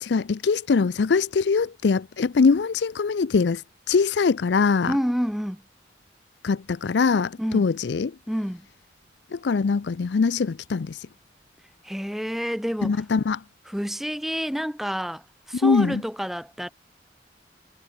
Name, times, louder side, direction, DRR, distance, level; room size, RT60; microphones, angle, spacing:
voice 1, 0.0-3.6 3.9-5.0 6.4-8.1 9.3-11.0 12.8-13.4 15.6-16.0, left 5 dB, 80° left, 0.5 m, -22 dB
voice 2, 4.9-5.6 7.4-7.7 8.3-8.7 11.8-13.0 13.7-16.7, equal, ahead, 1.2 m, -28 dB
head